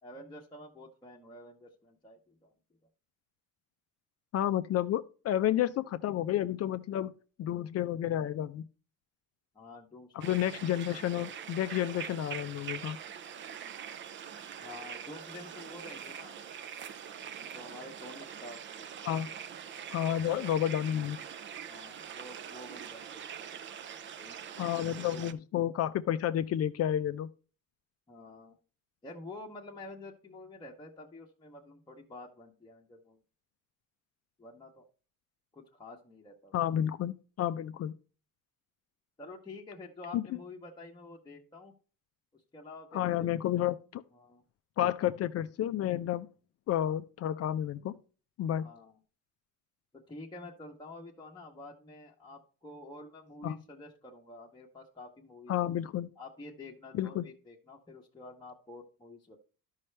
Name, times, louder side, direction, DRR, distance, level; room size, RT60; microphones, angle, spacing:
voice 1, 0.0-2.5 9.5-10.4 14.6-16.4 17.5-18.9 20.0-20.2 21.7-23.3 24.2-25.3 28.1-28.5 29.0-33.2 34.4-34.9 35.5-36.5 39.2-41.7 42.5-43.3 44.1-44.4 48.6-48.9 49.9-55.7 56.2-59.4, left 2 dB, 15° left, 1.0 m, -49 dB
voice 2, 4.3-7.1 7.4-8.6 10.1-13.0 19.0-19.3 19.9-21.2 24.6-27.3 36.5-37.9 40.1-40.2 42.9-44.0 44.8-46.3 46.7-48.0 48.4-48.7 53.4-53.6 55.5-56.1 56.9-57.2, left 11 dB, 45° left, 0.5 m, -31 dB
sound 1, 10.2-25.3, right 8 dB, 35° right, 0.5 m, -43 dB
11.5 x 5.6 x 3.2 m
cardioid pair, 125°, 34 cm